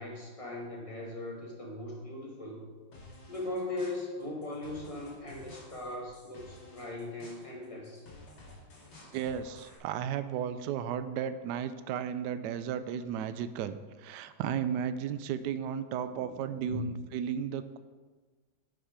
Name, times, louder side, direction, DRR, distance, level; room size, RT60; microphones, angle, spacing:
voice 1, 0.0-2.6 3.3-8.0 16.1-16.4 16.6-16.9, left 2 dB, 20° left, -2 dB, 1.7 m, -39 dB
sound 1, 2.9-9.8, left 2 dB, 65° left, 2.7 m, -53 dB
voice 2, 9.1-17.8, right 8 dB, 70° right, 12 dB, 1.1 m, -34 dB
9.2 x 6.0 x 5.0 m, 1.4 s
omnidirectional pair, 2.0 m